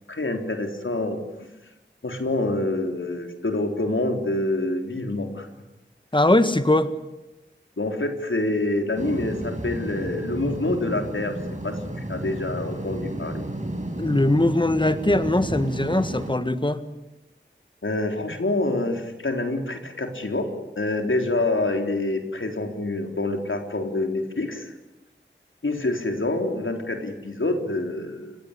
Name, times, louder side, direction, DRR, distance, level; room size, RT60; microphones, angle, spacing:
voice 1, 0.1-1.2 2.0-5.5 7.8-11.4 11.6-13.4 17.8-24.7 25.6-28.4, left 2 dB, 80° left, 5 dB, 3.8 m, -26 dB
voice 2, 6.1-6.9 14.0-16.8, left 1 dB, 25° left, 11 dB, 1.7 m, -21 dB
sound 1, 9.0-16.3, right 1 dB, 40° right, 5.6 m, -32 dB
29.5 x 17.0 x 10.0 m, 0.99 s
wide cardioid pair, 45°, 20 cm